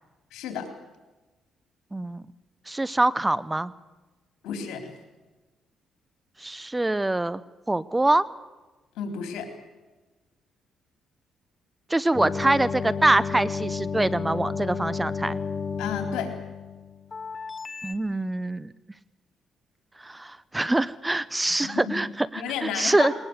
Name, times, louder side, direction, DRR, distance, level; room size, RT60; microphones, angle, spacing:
voice 1, 0.3-0.7 4.4-4.9 9.0-9.5 15.8-16.3 21.6-22.0 22.3-23.1, left 7 dB, 90° left, 6 dB, 4.0 m, -32 dB
voice 2, 1.9-2.2 2.7-3.7 6.4-7.4 7.7-8.2 11.9-15.4 17.8-18.7 20.0-23.1, right 2 dB, 15° right, 19 dB, 0.8 m, -24 dB
sound 1, 12.1-17.9, left 5 dB, 30° left, 1.0 m, -32 dB
21.0 x 19.5 x 8.2 m, 1.2 s
cardioid pair, 90°, 0 cm